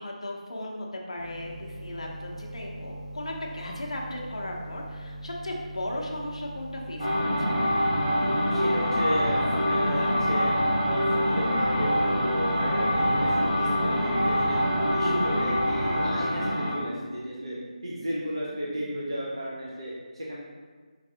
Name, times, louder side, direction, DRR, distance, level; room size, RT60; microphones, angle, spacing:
voice 1, 0.0-7.7, left 1 dB, 50° left, -1 dB, 0.6 m, -36 dB
sound 1, 1.1-16.1, right 1 dB, 75° right, 1.2 m, -40 dB
sound 2, 7.0-16.8, equal, 15° right, 1.1 m, -25 dB
sound 3, 7.8-19.4, equal, 55° right, 1.1 m, -41 dB
voice 2, 8.1-10.5 10.8-14.6 14.9-17.6 17.8-20.4, equal, 40° right, -6 dB, 0.5 m, -34 dB
4.7 x 3.2 x 2.7 m, 1.5 s
figure-of-eight pair, 180°, 4 cm